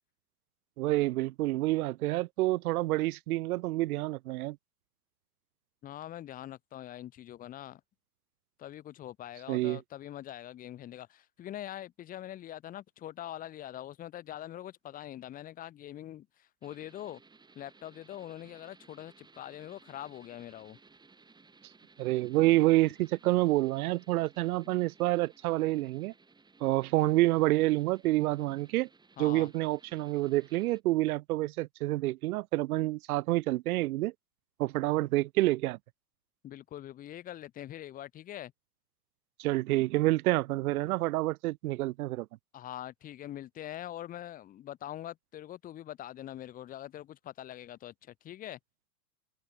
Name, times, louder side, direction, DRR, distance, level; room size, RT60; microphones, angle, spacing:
voice 1, 0.8-4.6 9.5-9.8 22.0-26.1 26.6-28.9 29.2-34.1 34.6-35.8 39.4-42.3, right 18 dB, 60° right, 0.6 m, -28 dB
voice 2, 5.8-7.8 8.6-17.2 17.5-20.8 24.6-24.8 29.2-29.5 36.4-38.5 42.5-48.6, left 12 dB, 15° left, 0.9 m, -43 dB
sound 1, 16.6-30.8, right 4 dB, 10° right, 3.5 m, -61 dB
hypercardioid pair, 135°, 49 cm